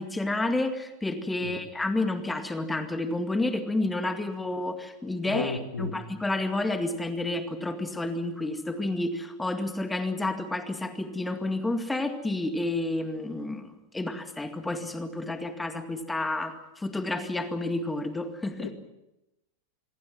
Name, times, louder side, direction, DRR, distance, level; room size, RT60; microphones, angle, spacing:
voice 1, 0.0-13.7 13.9-18.7, left 2 dB, 10° left, 8 dB, 2.1 m, -30 dB
voice 2, 5.2-5.9 18.6-18.7, left 4 dB, 70° left, 4 dB, 2.8 m, -33 dB
26.5 x 22.5 x 6.0 m, 0.93 s
figure-of-eight pair, 90°, 0 cm